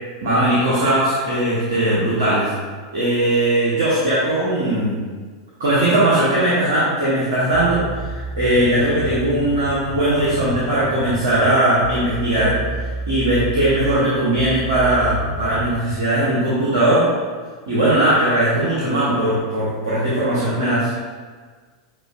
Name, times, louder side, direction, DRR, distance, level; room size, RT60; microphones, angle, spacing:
voice 1, 0.2-2.5 2.9-5.0 5.6-12.6 13.1-17.1 17.7-20.9, right 1 dB, 70° right, -9 dB, 1.1 m, -19 dB
sound 1, 7.5-11.4 11.8-14.0 14.4-15.8, right 1 dB, 35° left, 1.3 m, -30 dB
6.6 x 2.6 x 2.5 m, 1.5 s
figure-of-eight pair, 90°, 2 cm